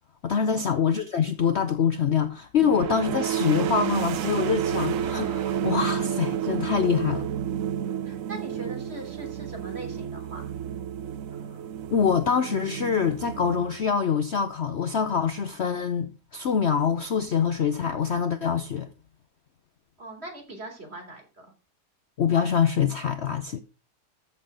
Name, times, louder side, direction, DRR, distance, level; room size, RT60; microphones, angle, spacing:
voice 1, 0.2-7.3 11.9-18.9 22.2-23.6, left 7 dB, 50° left, 0.9 m, -25 dB
sound 1, 2.6-14.1, right 9 dB, 65° right, 1.0 m, -30 dB
voice 2, 8.0-10.4 20.0-21.5, right 2 dB, 40° right, 3.7 m, -41 dB
14.0 x 6.5 x 3.7 m
omnidirectional pair, 1.7 m